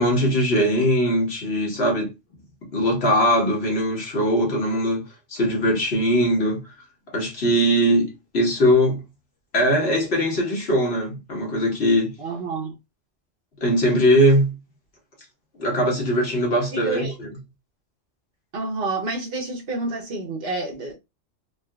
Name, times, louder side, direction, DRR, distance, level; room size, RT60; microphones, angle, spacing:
voice 1, 0.0-2.1 2.7-5.0 5.3-6.6 7.1-9.0 9.5-12.2 13.6-14.5 15.6-17.0, equal, 60° left, 1.4 m, -20 dB
voice 2, 12.2-12.8 16.7-17.2 18.5-21.0, right 3 dB, 55° right, 1.0 m, -29 dB
3.7 x 2.4 x 2.3 m
omnidirectional pair, 1.2 m